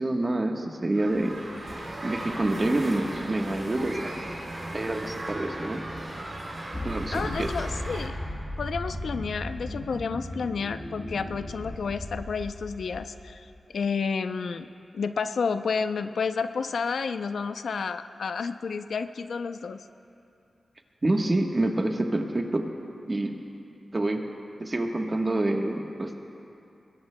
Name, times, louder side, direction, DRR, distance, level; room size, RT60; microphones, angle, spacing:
voice 1, 0.0-1.4 2.0-4.2 4.7-5.8 6.8-7.5 21.0-22.7 23.1-23.4 23.9-24.2 24.6-26.2, right 2 dB, 30° right, 2 dB, 1.2 m, -27 dB
sound 1, 0.9-8.1, right 1 dB, 45° right, 3.0 m, -37 dB
sound 2, 6.7-13.5, left 1 dB, 35° left, 4.5 m, -36 dB
voice 2, 7.1-8.1 8.6-14.7 14.9-19.8, left 5 dB, 80° left, 9 dB, 0.5 m, -30 dB
24.5 x 21.5 x 2.2 m, 2.7 s
wide cardioid pair, 125°, 0 cm